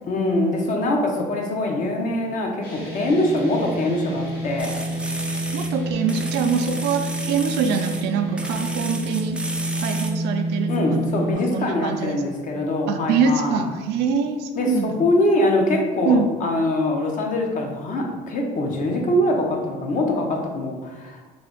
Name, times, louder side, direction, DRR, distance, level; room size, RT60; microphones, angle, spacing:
voice 1, 0.1-4.8 10.7-13.6 14.6-21.3, left 1 dB, 50° left, 1 dB, 0.7 m, -23 dB
sound 1, 2.6-11.3, right 1 dB, 70° left, 1.3 m, -28 dB
sound 2, 4.6-5.7 6.1-8.0 8.4-10.2, right 1 dB, 5° right, 0.3 m, -33 dB
voice 2, 5.5-9.4 9.8-11.0 11.5-12.2 12.9-15.0 16.0-16.3, right 5 dB, 85° right, 6 dB, 0.4 m, -24 dB
3.3 x 2.5 x 3.7 m, 1.3 s
cardioid pair, 110°, 17 cm